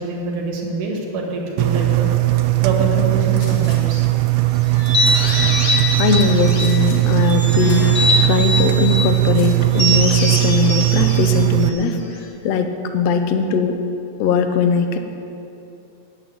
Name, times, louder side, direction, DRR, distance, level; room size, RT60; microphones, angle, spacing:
voice 1, 0.0-2.1 2.6-4.1, right 2 dB, 70° right, 0 dB, 3.3 m, -25 dB
Engine, 1.6-11.7, right 20 dB, 85° right, 1.6 m, -18 dB
Gunshot gunfire, 3.4-3.8 4.6-4.7 5.0-5.7 6.5-7.0 7.3-7.4 7.7-8.4 9.2-9.6, left 2 dB, 50° left, 2.9 m, -36 dB
sound 1, 4.7-6.8 7.2-9.1 9.7-12.2, equal, 30° left, 1.2 m, -22 dB
voice 2, 5.7-12.0 12.4-13.8 14.2-15.0, left 5 dB, 75° left, 7 dB, 1.5 m, -20 dB
10.0 x 8.3 x 9.4 m, 2.8 s
omnidirectional pair, 3.9 m